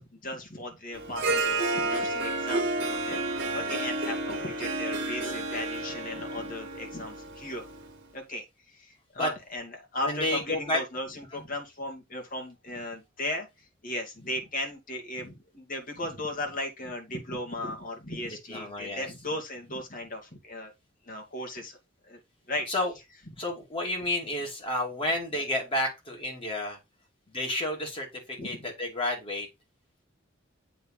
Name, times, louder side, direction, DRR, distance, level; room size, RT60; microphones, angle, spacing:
voice 1, 0.0-3.2 3.5-7.6 8.1-8.4 8.7-13.5 13.8-20.7 21.1-21.8 22.1-22.2 22.5-22.7 28.4-28.5, left 1 dB, 45° left, 2.5 m, -36 dB
Harp, 0.9-8.0, right 2 dB, 60° right, 1.8 m, -31 dB
voice 2, 3.4-3.8 9.2-9.3 10.0-10.8 11.3-11.4 18.3-19.1 22.7-22.9 23.4-26.8 27.3-29.5, left 1 dB, 30° left, 2.7 m, -31 dB
7.9 x 3.6 x 5.6 m
head